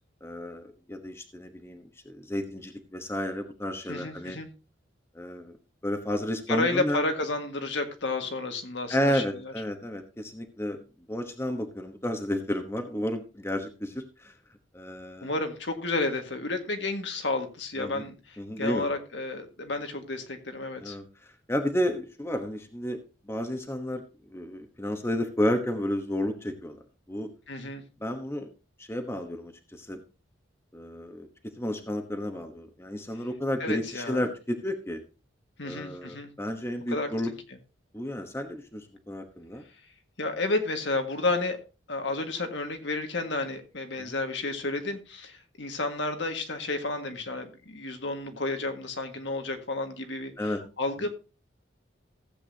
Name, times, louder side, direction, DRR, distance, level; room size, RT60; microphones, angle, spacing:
voice 1, 0.2-4.4 5.1-5.6 5.8-7.0 8.9-10.8 11.1-14.3 14.7-15.3 17.8-18.0 18.4-18.9 20.8-21.1 21.5-24.0 24.3-26.8 27.1-27.3 28.0-28.5 28.8-30.0 30.7-31.3 31.6-35.0 35.6-37.3 37.9-39.6 44.0-44.1 50.4-50.6, equal, 15° left, 6 dB, 1.1 m, -32 dB
voice 2, 3.9-4.5 6.5-9.5 15.2-21.0 27.5-27.8 33.6-34.3 35.6-36.3 36.9-37.1 40.2-41.6 41.9-51.1, left 2 dB, 70° left, 5 dB, 1.8 m, -31 dB
15.5 x 8.3 x 2.8 m, 0.31 s
head